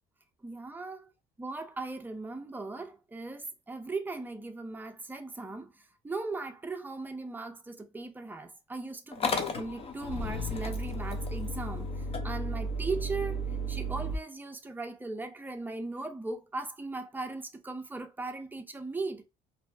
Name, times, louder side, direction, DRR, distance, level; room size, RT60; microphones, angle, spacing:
voice 1, 0.4-1.1 1.4-19.3, right 3 dB, 10° right, 0.5 m, -38 dB
Motor vehicle (road) / Engine starting, 9.1-14.2, equal, 35° left, 0.6 m, -33 dB
2.7 x 2.2 x 3.2 m
cardioid pair, 110°, 17 cm